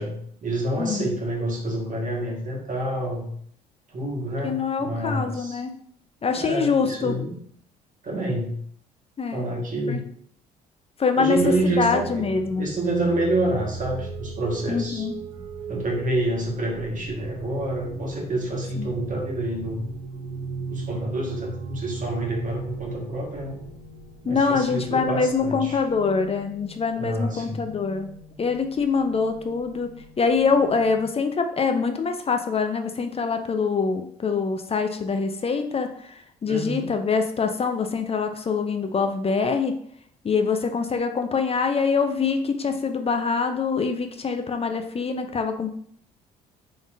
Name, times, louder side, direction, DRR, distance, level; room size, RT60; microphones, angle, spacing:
voice 1, 0.0-3.3 3.9-5.6 6.3-7.4 8.0-8.6 9.3-10.0 11.1-12.2 12.6-15.0 15.7-19.8 20.7-23.6 24.2-25.8 27.0-27.6 36.5-37.0, right 1 dB, 40° right, -1 dB, 1.4 m, -28 dB
voice 2, 0.8-1.1 4.4-5.7 6.2-7.2 9.2-9.5 9.9-10.0 11.0-11.4 11.8-12.7 14.7-15.1 18.8-18.9 24.3-28.1 28.4-29.9 30.2-39.8 40.2-45.7, left 5 dB, 30° left, 6 dB, 0.5 m, -24 dB
sound 1, 11.3-31.0, right 4 dB, 70° right, 1.1 m, -38 dB
3.8 x 3.6 x 2.5 m, 0.64 s
hypercardioid pair, 55°, 21 cm